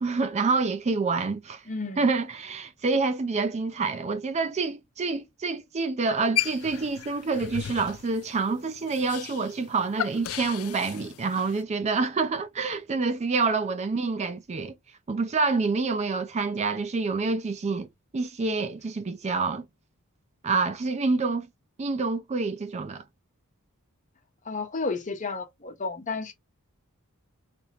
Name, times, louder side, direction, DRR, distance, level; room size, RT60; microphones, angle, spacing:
voice 1, 0.0-1.6 2.0-14.7 15.1-17.9 18.1-19.6 20.4-21.5 21.8-23.0, right 4 dB, 30° right, 0.4 m, -27 dB
voice 2, 1.7-2.1 24.4-26.3, left 3 dB, 35° left, 1.0 m, -32 dB
sound 1, 6.4-11.6, left 12 dB, 70° left, 0.4 m, -35 dB
3.4 x 2.9 x 4.1 m
head